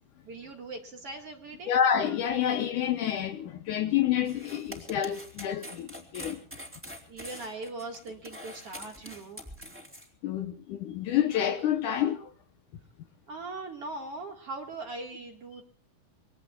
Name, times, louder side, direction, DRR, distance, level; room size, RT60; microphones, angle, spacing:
voice 1, 0.2-1.7 7.1-9.4 13.3-15.6, right 3 dB, 45° right, 2.2 m, -40 dB
voice 2, 1.7-6.4 10.2-12.3, left 9 dB, 70° left, 2.1 m, -28 dB
sound 1, 4.3-10.1, equal, 5° right, 2.6 m, -44 dB
25.5 x 21.5 x 2.3 m
omnidirectional pair, 4.3 m